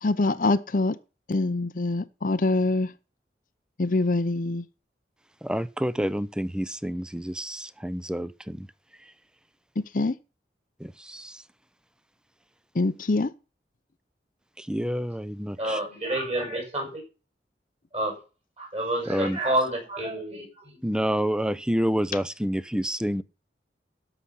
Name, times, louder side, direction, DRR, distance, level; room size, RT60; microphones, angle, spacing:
voice 1, 0.0-1.0 1.3-2.9 3.8-4.6 9.8-10.2 12.7-13.3, left 2 dB, 50° left, 0.6 m, -24 dB
voice 2, 5.4-8.7 10.8-11.4 14.6-15.8 19.1-19.4 20.8-23.2, equal, 5° right, 0.6 m, -28 dB
voice 3, 15.6-17.0 17.9-18.2 18.6-20.8, right 1 dB, 35° right, 6.0 m, -29 dB
13.0 x 6.0 x 8.4 m
head